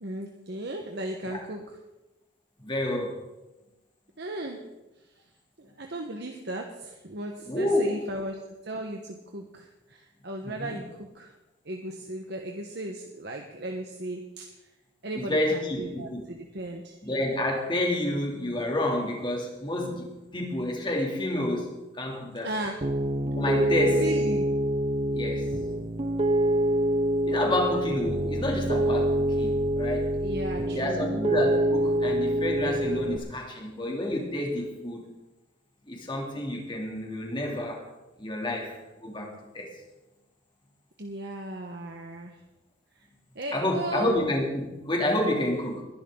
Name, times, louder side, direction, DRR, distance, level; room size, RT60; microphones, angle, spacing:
voice 1, 0.0-1.6 4.2-4.6 5.0-5.2 5.6-8.4 8.6-11.3 11.6-14.7 15.0-16.9 22.4-22.8 23.9-24.4 27.3-27.6 30.2-31.2 41.0-42.4 42.9-43.1 43.3-44.2, right 1 dB, 60° right, 2 dB, 1.2 m, -36 dB
voice 2, 2.6-3.2 7.5-7.9 10.4-10.8 15.1-16.2 17.0-22.5 23.3-24.0 25.1-25.5 27.2-30.1 30.7-35.0 35.9-37.8 38.2-39.7 43.5-45.8, left 1 dB, 25° left, 0 dB, 2.8 m, -29 dB
Piano, 22.8-33.2, right 1 dB, 30° right, 0.8 m, -26 dB
21.0 x 11.0 x 3.9 m, 1.0 s
head